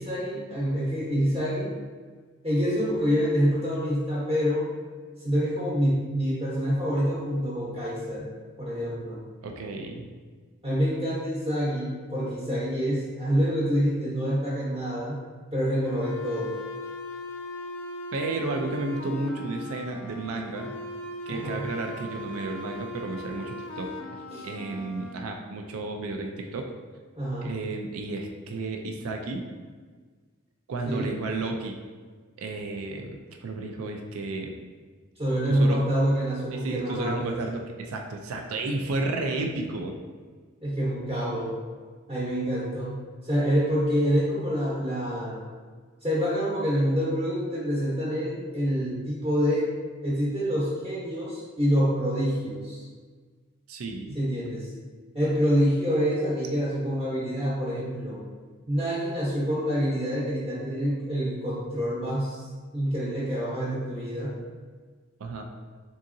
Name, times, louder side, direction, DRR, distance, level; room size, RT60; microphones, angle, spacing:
voice 1, 0.0-1.7 2.4-4.7 5.2-8.3 8.6-9.2 10.6-15.2 15.5-16.5 21.3-21.7 24.3-24.4 27.2-27.5 30.8-31.1 35.2-37.4 40.6-41.5 42.1-45.4 46.0-49.7 50.0-52.8 54.1-54.7 55.1-58.2 58.7-62.5 62.7-64.4, equal, 25° right, -8 dB, 0.8 m, -26 dB
voice 2, 9.4-10.1 18.1-20.7 21.3-23.9 24.4-26.7 27.4-29.4 30.7-31.8 32.4-34.6 35.5-35.8 36.5-40.0 53.7-54.2 65.2-65.4, right 2 dB, 90° right, 3 dB, 0.4 m, -32 dB
sound 1, 15.8-25.1, left 1 dB, 80° left, 0.4 m, -39 dB
3.9 x 3.7 x 2.6 m, 1.5 s
head